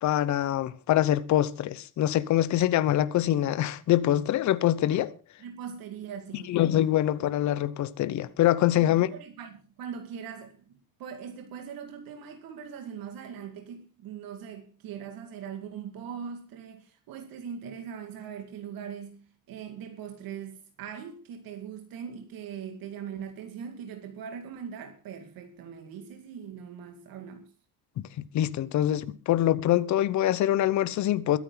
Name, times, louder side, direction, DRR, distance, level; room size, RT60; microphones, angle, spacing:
voice 1, 0.0-5.1 6.5-9.1 28.3-31.4, left 12 dB, 50° left, 0.9 m, -24 dB
voice 2, 5.4-6.6 8.8-19.2 19.5-27.5, right 7 dB, 65° right, 2.2 m, -41 dB
22.0 x 9.6 x 3.9 m
cardioid pair, 175°, 37 cm